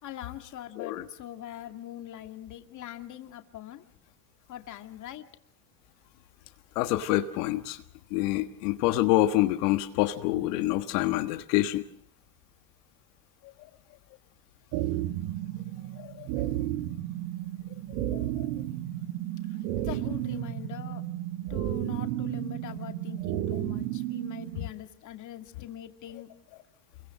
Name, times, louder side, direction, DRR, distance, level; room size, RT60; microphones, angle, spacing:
voice 1, 0.0-3.8 4.5-5.3 16.4-16.6 19.7-21.0 21.5-26.3, left 12 dB, 40° left, 2.3 m, -42 dB
voice 2, 6.7-7.8 8.1-11.8 16.0-16.5 18.1-18.5 24.5-24.6, left 15 dB, 80° left, 1.6 m, -27 dB
sound 1, 14.7-24.7, right 13 dB, 60° right, 1.7 m, -33 dB
28.0 x 23.0 x 6.5 m
supercardioid pair, 135°, 46 cm